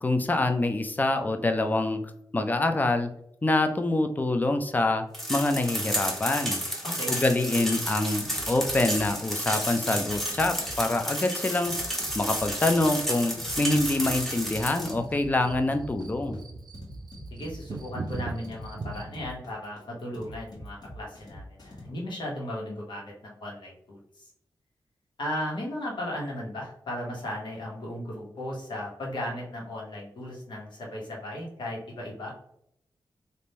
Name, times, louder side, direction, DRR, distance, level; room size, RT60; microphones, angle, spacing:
voice 1, 0.0-2.0 2.3-3.1 3.4-6.6 7.1-11.7 12.1-16.4, left 2 dB, 20° left, 6 dB, 0.4 m, -26 dB
sound 1, 5.1-14.9, equal, 5° left, 0.9 m, -31 dB
sound 2, 8.2-21.9, equal, 55° left, 1.4 m, -45 dB
sound 3, 11.7-19.2, right 3 dB, 55° right, 0.5 m, -41 dB
voice 2, 17.3-24.3 25.2-32.3, left 1 dB, 80° left, -2 dB, 1.3 m, -36 dB
3.5 x 2.6 x 4.2 m, 0.73 s
wide cardioid pair, 110°, 8 cm